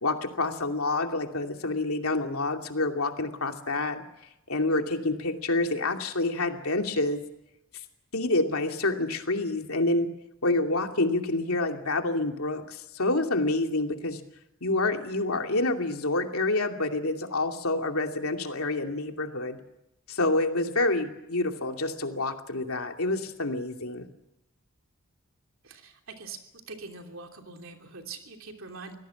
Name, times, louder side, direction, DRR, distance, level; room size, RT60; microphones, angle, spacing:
voice 1, 0.0-4.0 4.5-7.2 8.1-10.1 10.4-14.2 14.6-19.6 20.1-24.0, left 2 dB, 80° left, 4 dB, 2.7 m, -27 dB
voice 2, 25.6-26.4 26.7-28.9, right 4 dB, 65° right, 3 dB, 3.0 m, -43 dB
25.0 x 18.0 x 7.1 m, 0.88 s
head